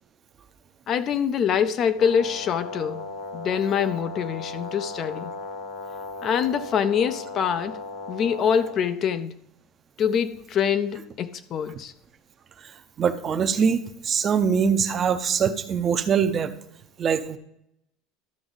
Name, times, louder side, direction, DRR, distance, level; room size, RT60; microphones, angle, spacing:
voice 1, 0.9-3.1 3.3-5.3 6.2-7.8 8.1-9.4 10.0-11.9, left 7 dB, 30° left, 0.4 m, -25 dB
Brass instrument, 2.0-8.9, left 3 dB, 75° left, 1.0 m, -36 dB
voice 2, 13.0-16.5 17.0-17.4, right 6 dB, 25° right, 0.6 m, -23 dB
12.5 x 6.0 x 3.9 m
cardioid pair, 160°, 0 cm